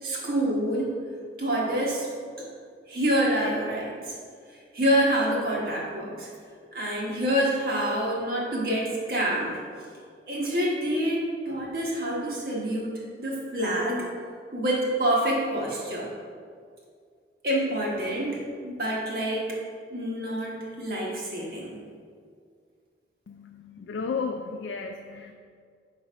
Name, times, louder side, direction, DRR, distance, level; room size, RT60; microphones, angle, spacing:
voice 1, 0.0-1.0 1.4-2.1 2.4-2.5 2.9-4.1 4.7-6.3 6.7-9.6 10.3-14.1 14.5-16.1 17.4-19.6 19.9-21.8, right 1 dB, 55° right, -4 dB, 1.3 m, -27 dB
voice 2, 23.3-25.3, left 5 dB, 85° left, 4 dB, 0.3 m, -33 dB
5.5 x 4.0 x 5.0 m, 2.1 s
head